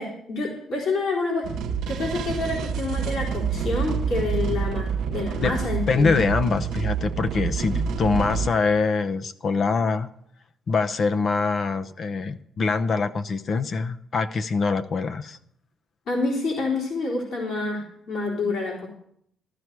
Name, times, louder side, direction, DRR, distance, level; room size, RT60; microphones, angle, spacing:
voice 1, 0.0-1.5 1.9-6.2 7.7-7.8 16.1-18.9, left 3 dB, 65° left, -3 dB, 3.9 m, -28 dB
sound 1, 1.4-8.5, right 6 dB, 85° right, 0.9 m, -27 dB
voice 2, 5.9-10.1 10.7-15.4, left 4 dB, 50° left, 9 dB, 0.7 m, -24 dB
14.0 x 13.0 x 4.7 m, 0.70 s
cardioid pair, 90°, 0 cm